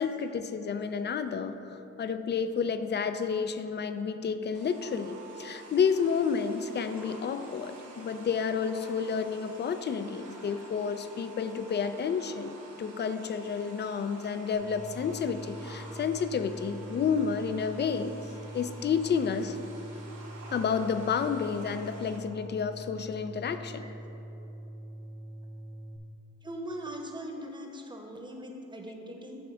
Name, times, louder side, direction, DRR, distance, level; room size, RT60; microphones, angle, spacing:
voice 1, 0.0-18.1 18.5-19.6 20.5-23.8, left 6 dB, 35° left, 10 dB, 0.4 m, -30 dB
sound 1, 4.5-22.2, right 2 dB, 90° right, 1.3 m, -49 dB
sound 2, 14.5-26.0, right 1 dB, 40° right, 1.1 m, -44 dB
voice 2, 26.4-29.4, right 1 dB, 15° right, 2 dB, 1.0 m, -40 dB
9.6 x 3.4 x 6.2 m, 3.0 s
cardioid pair, 90°, 30 cm